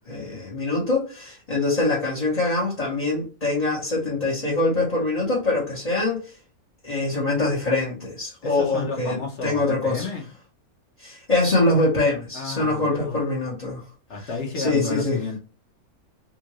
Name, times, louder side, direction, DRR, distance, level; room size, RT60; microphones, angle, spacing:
voice 1, 0.1-6.3 6.8-10.1 11.0-13.8 14.6-15.2, left 2 dB, 30° left, 1.1 m, -24 dB
voice 2, 8.4-10.3 12.3-13.2 14.1-15.4, left 4 dB, 55° left, 1.1 m, -31 dB
3.6 x 2.5 x 3.0 m
omnidirectional pair, 1.5 m